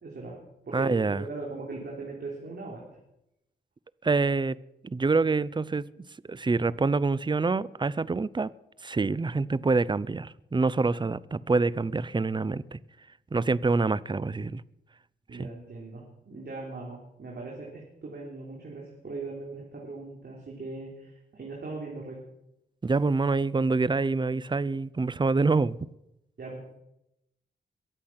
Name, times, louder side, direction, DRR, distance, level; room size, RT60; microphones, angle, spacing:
voice 1, 0.0-0.4 0.6-2.8 15.3-22.2 26.4-26.6, right 3 dB, 55° right, -2 dB, 3.9 m, -39 dB
voice 2, 0.7-1.2 4.0-4.6 4.8-5.8 6.3-8.5 8.8-12.8 13.3-14.6 15.4-15.5 22.8-25.8, right 3 dB, 25° right, 20 dB, 0.6 m, -26 dB
22.5 x 8.3 x 5.9 m, 0.86 s
cardioid pair, 60°, 20 cm